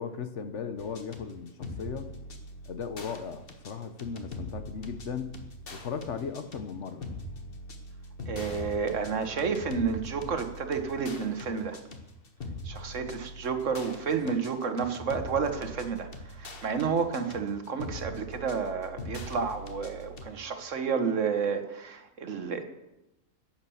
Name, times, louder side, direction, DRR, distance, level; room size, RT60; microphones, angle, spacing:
voice 1, 0.0-2.1 2.7-5.3 5.7-7.1 14.1-14.4, left 6 dB, 60° left, 10 dB, 1.2 m, -37 dB
sound 1, 0.8-20.3, left 1 dB, 45° left, 1.5 m, -42 dB
voice 2, 8.3-11.8 12.6-22.6, right 5 dB, 65° right, 8 dB, 1.5 m, -31 dB
11.0 x 8.9 x 7.0 m, 0.94 s
omnidirectional pair, 1.4 m